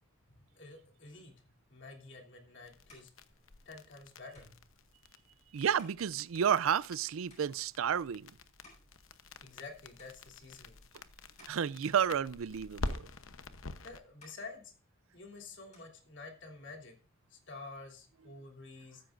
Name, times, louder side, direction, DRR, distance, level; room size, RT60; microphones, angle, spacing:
voice 1, 0.5-1.3 1.7-3.1 3.6-4.5 9.4-10.8 13.8-14.7 15.1-17.0 17.3-19.0, left 3 dB, 60° left, 3.2 m, -49 dB
sound 1, 2.6-14.0, left 2 dB, 80° left, 0.9 m, -46 dB
sound 2, 2.8-9.7 10.0-10.7 11.1-12.6 12.9-13.7 14.0-15.3 15.5-16.6, left 2 dB, 35° left, 7.9 m, -65 dB
voice 2, 5.5-8.3 11.5-13.0, right 8 dB, 90° right, 0.4 m, -31 dB
14.5 x 13.5 x 2.6 m
head